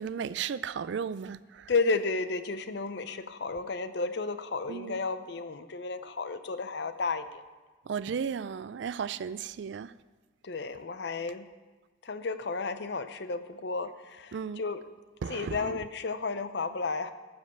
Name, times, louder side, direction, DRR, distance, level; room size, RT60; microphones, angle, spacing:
voice 1, 0.0-1.7 4.7-5.0 7.9-9.9 14.3-14.6 15.2-15.8, right 7 dB, 65° right, 0.3 m, -35 dB
voice 2, 1.7-7.4 10.4-11.5 12.0-14.8 15.3-17.1, left 4 dB, 55° left, 0.6 m, -32 dB
12.5 x 5.3 x 7.9 m
head